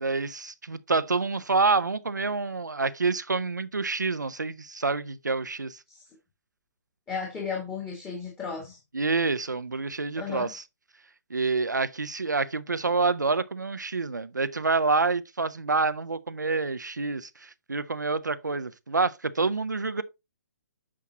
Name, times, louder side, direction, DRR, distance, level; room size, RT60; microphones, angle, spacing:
voice 1, 0.0-5.8 8.9-10.6 11.3-20.0, right 4 dB, 85° right, 0.8 m, -27 dB
voice 2, 7.1-8.8 10.2-10.5, left 6 dB, 15° left, 2.2 m, -34 dB
8.6 x 5.8 x 2.9 m
figure-of-eight pair, 135°, 9 cm